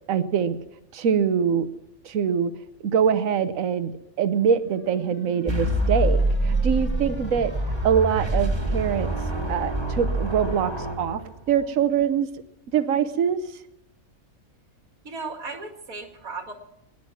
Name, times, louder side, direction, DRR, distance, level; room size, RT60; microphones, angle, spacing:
voice 1, 0.1-0.6 0.9-1.7 2.0-2.5 2.8-3.9 4.2-7.5 7.8-9.1 9.4-10.7 11.0-11.2 11.5-12.3 12.7-13.4, right 7 dB, 70° right, 12 dB, 1.3 m, -23 dB
sound 1, 4.5-7.9, left 1 dB, 10° left, 1.3 m, -42 dB
sound 2, 5.5-11.6, right 1 dB, 20° right, 1.9 m, -26 dB
voice 2, 15.0-16.5, right 4 dB, 90° right, 3 dB, 2.7 m, -35 dB
23.5 x 10.5 x 5.9 m, 0.82 s
omnidirectional pair, 1.5 m